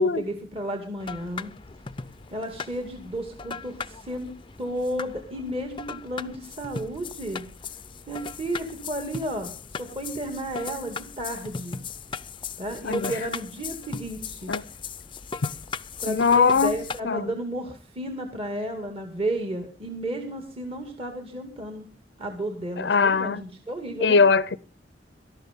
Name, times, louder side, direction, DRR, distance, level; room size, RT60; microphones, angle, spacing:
voice 1, 0.0-1.5 2.3-4.3 4.6-7.4 8.1-11.8 12.6-14.5 16.0-21.9 22.2-24.2, right 1 dB, 30° right, 2.3 m, -32 dB
sound 1, 1.0-17.0, left 5 dB, 30° left, 0.6 m, -38 dB
voice 2, 16.0-16.8 17.0-17.3 22.8-23.4 24.0-24.6, left 5 dB, 70° left, 0.6 m, -21 dB
18.0 x 13.5 x 3.7 m
head